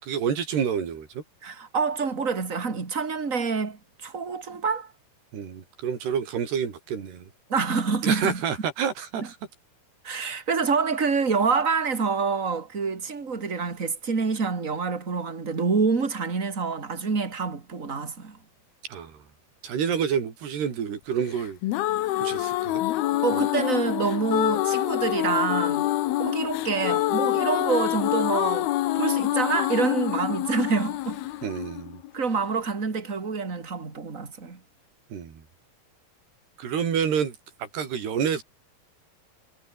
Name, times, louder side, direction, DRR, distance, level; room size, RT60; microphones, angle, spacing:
voice 1, 0.0-1.2 5.3-7.3 8.0-9.4 18.9-19.2 19.6-21.6 22.2-22.8 23.3-23.5 31.4-32.0 35.1-35.4 36.6-38.4, right 7 dB, 90° right, 5.7 m, -28 dB
voice 2, 1.4-4.9 7.5-8.4 9.2-9.3 10.0-18.4 22.0-22.2 23.2-25.9 26.2-31.2 32.1-34.6, right 5 dB, 20° right, 2.8 m, -27 dB
sound 1, 21.4-32.4, left 15 dB, 75° left, 2.9 m, -26 dB
omnidirectional pair, 4.6 m